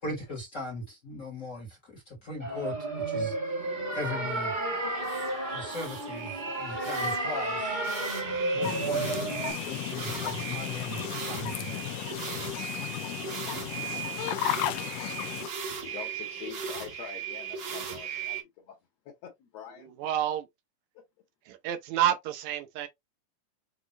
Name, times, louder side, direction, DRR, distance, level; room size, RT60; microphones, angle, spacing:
voice 1, 0.0-2.8 3.1-3.5 3.9-4.6 5.5-7.9 8.5-9.3 9.6-11.9, left 2 dB, 40° left, 1.1 m, -39 dB
sound 1, 2.4-9.5, right 2 dB, 40° right, 0.7 m, -32 dB
sound 2, 3.6-18.4, right 6 dB, 55° right, 1.3 m, -38 dB
sound 3, 8.6-15.5, left 12 dB, 85° left, 1.5 m, -34 dB
voice 2, 15.8-18.8 19.1-19.9, left 8 dB, 65° left, 2.0 m, -45 dB
voice 3, 19.8-20.5 21.5-22.9, right 11 dB, 75° right, 2.1 m, -29 dB
6.3 x 2.5 x 2.9 m
omnidirectional pair, 3.5 m